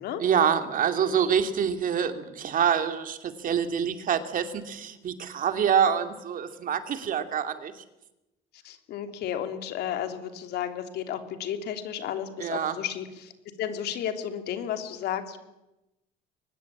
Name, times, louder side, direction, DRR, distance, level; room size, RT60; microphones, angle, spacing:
voice 1, 0.2-7.8 12.4-12.8, right 8 dB, 55° right, 8 dB, 2.6 m, -26 dB
voice 2, 8.5-13.3 13.6-15.4, left 9 dB, 75° left, 7 dB, 3.2 m, -33 dB
23.5 x 20.5 x 8.6 m, 0.95 s
cardioid pair, 110°, 17 cm